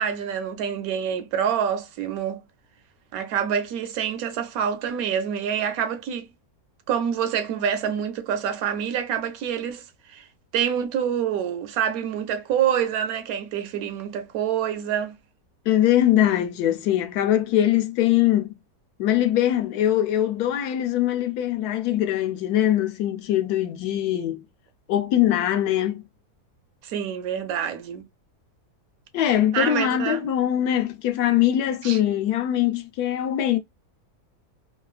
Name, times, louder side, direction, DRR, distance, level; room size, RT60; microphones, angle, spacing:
voice 1, 0.0-2.4 3.1-6.3 6.9-10.3 10.5-15.2 26.8-28.0 29.5-30.2 31.8-32.0, right 8 dB, 70° right, 1.0 m, -26 dB
voice 2, 15.7-18.5 19.0-24.4 24.9-26.0 29.1-33.6, left 12 dB, 80° left, 1.1 m, -22 dB
3.1 x 2.4 x 2.3 m
omnidirectional pair, 1.7 m